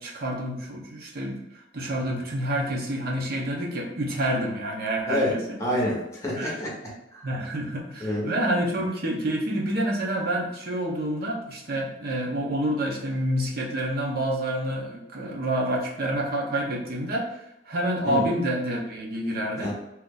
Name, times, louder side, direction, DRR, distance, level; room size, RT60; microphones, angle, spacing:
voice 1, 0.0-5.4 6.4-6.6 7.2-17.4 17.7-19.7, right 1 dB, 55° right, -2 dB, 0.9 m, -28 dB
voice 2, 5.6-6.7 7.1-7.3 8.0-8.3 18.0-18.3 19.6-19.7, left 1 dB, 15° left, -4 dB, 1.1 m, -27 dB
2.9 x 2.5 x 3.8 m, 0.90 s
head